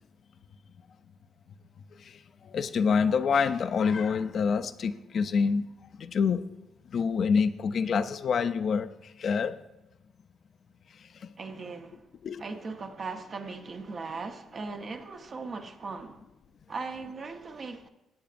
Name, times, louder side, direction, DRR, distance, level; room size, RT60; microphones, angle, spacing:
voice 1, 2.0-5.7 6.0-6.4 6.9-9.6 11.2-11.3 12.2-12.4, left 5 dB, 55° left, 0.5 m, -27 dB
voice 2, 11.4-12.1 12.4-16.2 16.7-17.9, right 4 dB, 45° right, 0.9 m, -38 dB
15.5 x 8.3 x 2.6 m
cardioid pair, 90°, 0 cm